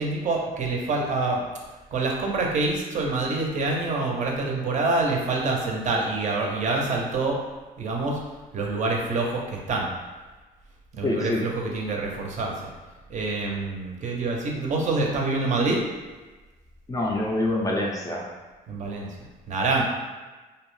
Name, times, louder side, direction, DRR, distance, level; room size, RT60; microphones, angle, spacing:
voice 1, 0.0-1.4 1.9-7.4 7.8-8.2 8.5-9.9 10.9-12.7 13.1-15.8 18.7-19.1 19.5-19.8, right 3 dB, 45° right, 0 dB, 0.5 m, -26 dB
voice 2, 11.0-11.4 16.9-18.3, left 2 dB, 20° left, -2 dB, 0.4 m, -26 dB
2.6 x 2.0 x 3.0 m, 1.2 s
cardioid pair, 110°, 17 cm